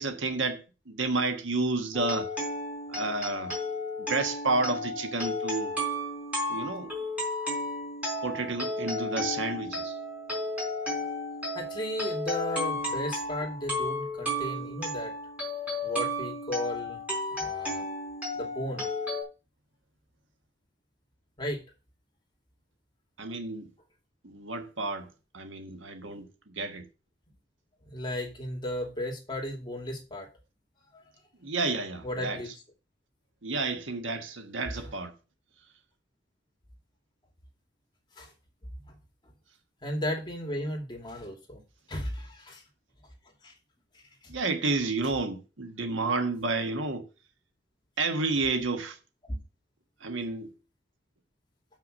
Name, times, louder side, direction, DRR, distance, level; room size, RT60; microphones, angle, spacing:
voice 1, 0.0-2.3 2.9-3.5 4.0-5.7 6.5-6.9 8.2-10.0 23.2-23.7 24.2-25.1 25.3-26.9 31.4-32.4 33.4-35.1 44.3-47.1 48.0-49.0 50.0-50.5, right 3 dB, 90° right, 1.4 m, -30 dB
sound 1, 1.9-19.2, left 1 dB, 5° right, 4.0 m, -33 dB
voice 2, 11.5-15.1 15.8-17.0 17.4-17.9 18.4-18.9 21.4-21.6 27.8-30.3 30.9-31.0 32.0-32.5 38.2-38.3 38.8-39.0 39.2-39.3 39.8-41.6 41.9-42.6 43.4-43.5 43.9-44.0 49.2-49.4, left 1 dB, 25° left, 2.4 m, -35 dB
7.1 x 5.8 x 6.3 m
head